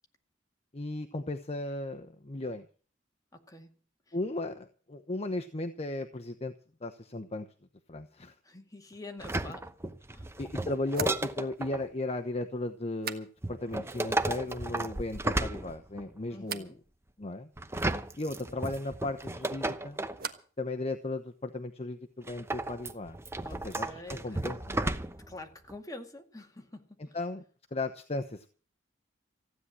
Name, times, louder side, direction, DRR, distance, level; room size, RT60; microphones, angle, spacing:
voice 1, 0.7-2.7 4.1-6.5 6.8-7.5 7.9-8.3 10.4-16.7 17.2-17.5 18.2-20.0 20.6-23.2 23.6-24.8 27.1-27.4 27.7-28.5, left 2 dB, 35° left, 6 dB, 0.9 m, -36 dB
voice 2, 3.3-3.7 4.1-4.2 8.4-9.7 10.1-10.4 16.3-16.8 23.4-24.4 25.3-27.2, left 2 dB, 20° left, 4 dB, 2.1 m, -47 dB
sound 1, 9.2-11.8 13.4-16.2 17.6-20.2 22.3-25.4 25.7-25.8, right 2 dB, 15° right, 0.9 m, -34 dB
sound 2, 10.9-13.8 14.0-14.6 15.0-15.6 16.4-16.8 19.2-20.6 20.9-21.5, right 6 dB, 55° right, 1.3 m, -44 dB
15.5 x 9.8 x 7.5 m, 0.41 s
head